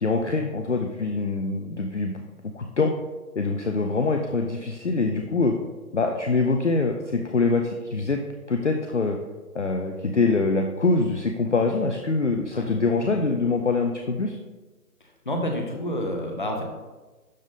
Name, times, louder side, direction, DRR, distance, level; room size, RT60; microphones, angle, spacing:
voice 1, 0.0-2.9 3.4-5.6 5.9-8.2 8.5-9.2 9.5-14.4, left 3 dB, 50° left, 4 dB, 0.6 m, -24 dB
voice 2, 15.0-16.6, equal, 35° left, 3 dB, 1.0 m, -29 dB
11.5 x 4.0 x 3.6 m, 1.2 s
figure-of-eight pair, 160°, 46 cm